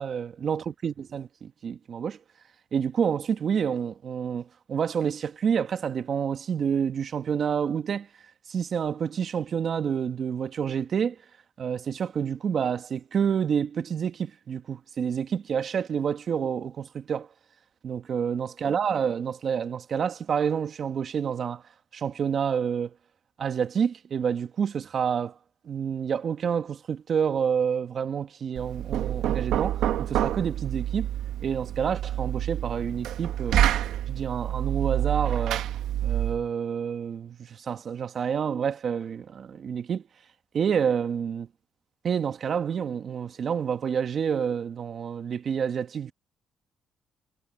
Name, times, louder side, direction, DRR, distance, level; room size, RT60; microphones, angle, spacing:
voice 1, 0.0-2.2 2.7-8.1 8.5-11.2 11.6-17.3 17.8-21.6 21.9-22.9 23.4-25.3 25.6-31.1 31.4-33.6 34.1-35.6 36.0-40.0 40.5-41.5 42.0-46.1, right 7 dB, 55° right, 1.7 m, -28 dB
Knock, 28.6-36.5, right 11 dB, 85° right, 1.6 m, -28 dB
cardioid pair, 90°, 0 cm